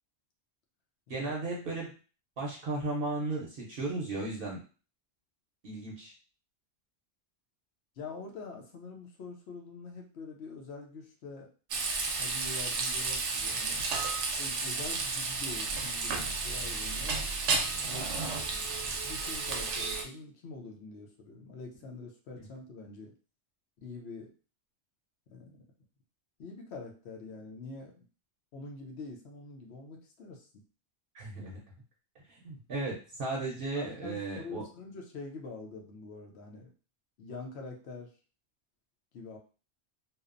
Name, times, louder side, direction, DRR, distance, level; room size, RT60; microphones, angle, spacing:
voice 1, 1.1-1.9 2.4-4.6 5.6-6.1 31.1-31.6 32.4-34.6, right 3 dB, 60° right, -2 dB, 0.8 m, -35 dB
voice 2, 8.0-11.5 12.2-13.8 14.4-17.3 17.8-23.1 23.8-24.3 25.3-25.6 26.4-28.1 28.5-30.6 33.8-36.7 37.2-38.2 39.1-39.4, left 3 dB, 70° left, 2 dB, 0.9 m, -45 dB
Frying (food), 11.7-20.0, right 4 dB, 90° right, 0.9 m, -32 dB
2.8 x 2.0 x 2.4 m, 0.36 s
omnidirectional pair, 1.2 m